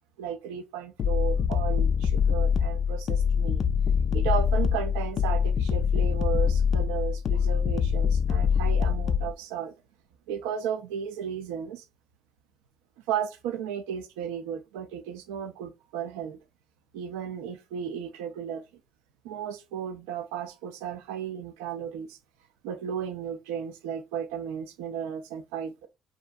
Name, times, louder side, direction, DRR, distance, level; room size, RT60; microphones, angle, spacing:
voice 1, 0.2-3.6 4.1-9.7 10.3-11.8 13.1-16.4 16.9-18.6 19.2-22.2 22.6-25.9, right 8 dB, 90° right, 0.4 m, -34 dB
sound 1, 1.0-9.3, left 7 dB, 55° left, 0.3 m, -24 dB
2.4 x 2.2 x 2.5 m
supercardioid pair, 70°, 0 cm